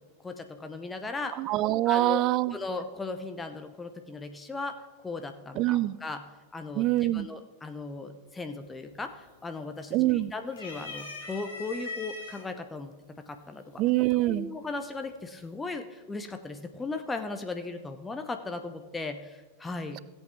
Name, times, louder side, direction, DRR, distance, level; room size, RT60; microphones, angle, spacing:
voice 1, 0.2-1.4 1.9-2.2 2.5-6.2 6.5-6.9 7.1-13.8 14.2-20.0, left 3 dB, 10° left, 7 dB, 0.7 m, -37 dB
voice 2, 1.4-2.5 5.6-6.0 6.8-7.3 9.9-10.3 13.8-14.5, right 16 dB, 40° right, 19 dB, 0.4 m, -25 dB
sound 1, 8.6-9.0 9.4-10.1 10.5-12.4 13.3-13.4 14.6-15.1, left 3 dB, 65° left, 2.5 m, -41 dB
16.5 x 8.2 x 3.5 m, 1.3 s
figure-of-eight pair, 90°, 0 cm